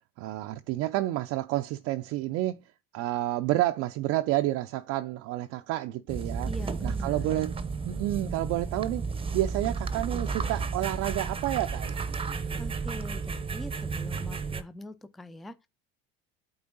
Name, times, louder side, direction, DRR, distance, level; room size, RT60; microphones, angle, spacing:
voice 1, 0.2-2.6 2.9-6.5 6.8-7.5 7.8-9.0 9.3-12.1, right 15 dB, 55° right, 0.5 m, -29 dB
sound 1, 6.1-14.6, right 5 dB, 20° right, 0.8 m, -33 dB
voice 2, 6.4-7.4 12.6-15.7, left 1 dB, ahead, 0.4 m, -43 dB
8.7 x 3.5 x 3.8 m
hypercardioid pair, 80°, 29 cm